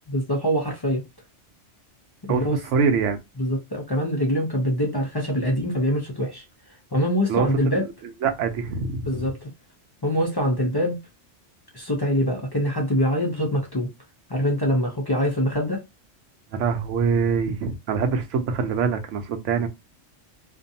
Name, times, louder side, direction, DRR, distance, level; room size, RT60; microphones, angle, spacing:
voice 1, 0.1-1.0 2.3-2.6 3.4-6.4 6.9-7.9 9.1-9.5 10.0-11.0 11.7-13.9 14.3-15.8, equal, 35° left, 0.4 m, -24 dB
voice 2, 2.3-3.2 7.3-7.5 7.7-7.8 8.2-9.2 16.5-19.7, right 5 dB, 90° right, 0.9 m, -24 dB
2.5 x 2.2 x 2.6 m
omnidirectional pair, 1.2 m